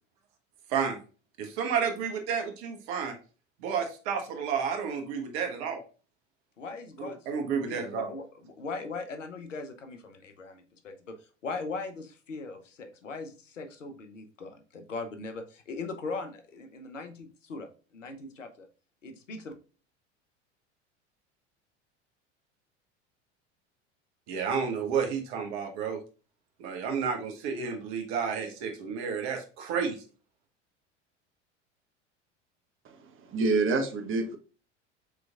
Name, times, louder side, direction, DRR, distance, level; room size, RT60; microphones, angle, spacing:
voice 1, 1.4-3.1 3.6-5.8 7.0-8.1 24.3-26.0 26.6-30.0, right 6 dB, 60° right, 1.3 m, -31 dB
voice 2, 6.6-11.2 11.4-18.7 19.0-19.5, left 3 dB, 90° left, 0.9 m, -40 dB
voice 3, 33.3-34.4, right 3 dB, 35° right, 1.0 m, -26 dB
6.8 x 3.2 x 2.4 m
hypercardioid pair, 80°, 36 cm